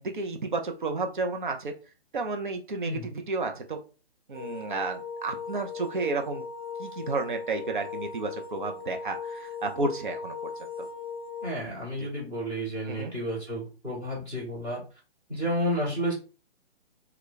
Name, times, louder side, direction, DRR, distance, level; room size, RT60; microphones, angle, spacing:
voice 1, 0.0-1.7 2.1-3.8 4.3-6.4 6.8-10.5 10.8-10.9 12.0-12.1 12.9-13.1, right 3 dB, 50° right, 5 dB, 0.6 m, -32 dB
sound 1, 4.3-11.5, left 5 dB, 80° right, 1.0 m, -38 dB
voice 2, 11.4-14.8 15.3-16.1, equal, 10° right, -7 dB, 0.9 m, -31 dB
2.3 x 2.2 x 3.8 m, 0.34 s
figure-of-eight pair, 135°, 32 cm